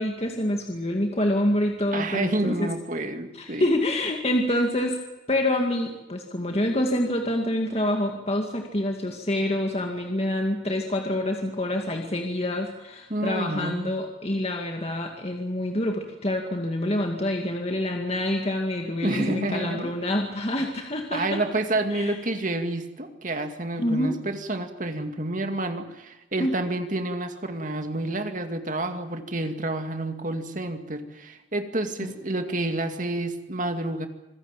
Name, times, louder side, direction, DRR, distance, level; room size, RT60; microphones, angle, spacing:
voice 1, 0.0-2.7 3.3-5.0 5.3-21.4 21.9-22.1 23.8-24.2 26.4-26.7 32.0-32.1, left 1 dB, 30° left, 2 dB, 2.2 m, -27 dB
voice 2, 1.9-3.8 13.1-13.9 19.0-19.9 20.6-20.7 21.1-34.1, right 2 dB, 40° right, 6 dB, 2.3 m, -29 dB
26.5 x 16.5 x 9.0 m, 1.0 s
head